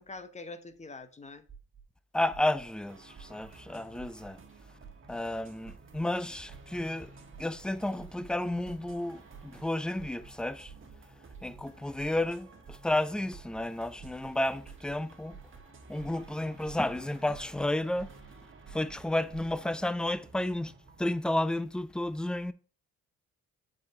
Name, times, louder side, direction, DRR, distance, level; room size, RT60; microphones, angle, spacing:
voice 1, 0.0-1.4, left 3 dB, 25° left, 1.0 m, -45 dB
sound 1, 1.5-1.8 2.3-2.6 3.2-3.5 4.0-4.3 4.8-5.2 5.6-6.0 6.5-6.8 7.3-7.6 8.0-8.3 8.7-8.9 9.3-9.6 10.0-10.3 10.7-10.9 11.3-11.6 12.0-12.3 12.7-13.0 13.3-13.6 14.0-14.3 14.6-15.0 15.3-15.6 16.0-16.3 16.6-17.0 17.3-17.6 18.0-18.3 18.7-19.0 19.3-19.6, right 7 dB, 25° right, 2.2 m, -50 dB
voice 2, 2.1-4.4 5.1-7.1 7.4-10.7 11.4-15.4 15.9-18.1 18.7-20.7 21.0-22.5, left 1 dB, 5° left, 0.5 m, -32 dB
sound 2, 2.9-21.1, right 3 dB, 40° right, 1.4 m, -54 dB
7.5 x 4.9 x 3.7 m
cardioid pair, 90°, 30 cm